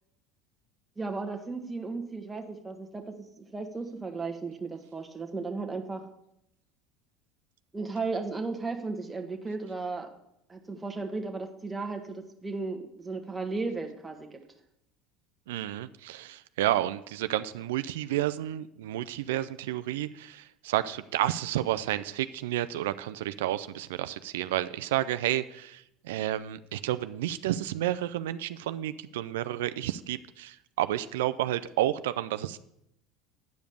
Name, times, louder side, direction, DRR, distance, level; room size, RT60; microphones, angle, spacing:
voice 1, 1.0-6.1 7.7-10.1 10.5-14.4, right 3 dB, 15° right, 4 dB, 1.2 m, -35 dB
voice 2, 15.5-32.6, right 13 dB, 90° right, 13 dB, 0.3 m, -31 dB
9.2 x 5.1 x 6.9 m, 0.79 s
supercardioid pair, 110°, 0 cm